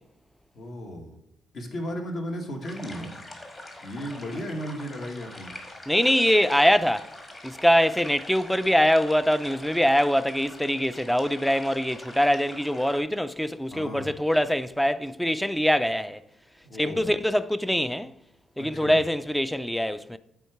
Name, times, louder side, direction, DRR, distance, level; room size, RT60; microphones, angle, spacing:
voice 1, 0.5-1.2 1.5-3.1 3.8-5.5 13.7-14.1 16.6-17.2 18.6-19.0, equal, 55° left, 1.4 m, -35 dB
sound 1, 2.6-13.0, left 1 dB, 25° left, 1.4 m, -44 dB
voice 2, 5.9-7.1 7.4-16.2 16.8-18.1 18.6-20.2, equal, 5° left, 0.3 m, -23 dB
8.3 x 3.6 x 4.6 m
cardioid pair, 90°, 0 cm